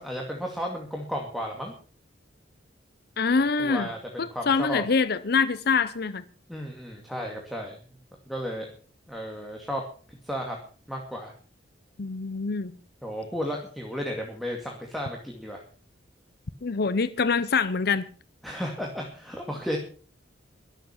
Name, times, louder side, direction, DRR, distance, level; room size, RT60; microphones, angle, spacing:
voice 1, 0.0-1.7 3.6-4.8 6.5-8.0 8.3-8.7 9.1-9.8 10.2-10.6 10.9-11.3 13.0-15.6 18.4-19.8, equal, ahead, 2.2 m, -33 dB
voice 2, 3.2-3.9 4.2-6.2 12.0-12.7 16.6-18.1, left 5 dB, 55° left, 0.7 m, -25 dB
22.5 x 7.9 x 5.8 m
head